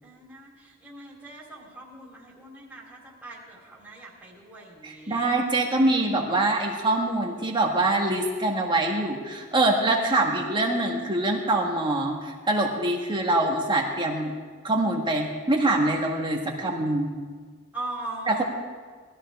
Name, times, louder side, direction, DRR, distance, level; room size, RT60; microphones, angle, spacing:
voice 1, 0.0-5.3 17.7-18.4, right 2 dB, 5° right, -5 dB, 3.7 m, -40 dB
voice 2, 4.8-14.3 14.6-17.1 18.3-18.4, right 2 dB, 20° right, 0 dB, 1.9 m, -24 dB
20.0 x 13.5 x 3.7 m, 1.5 s
head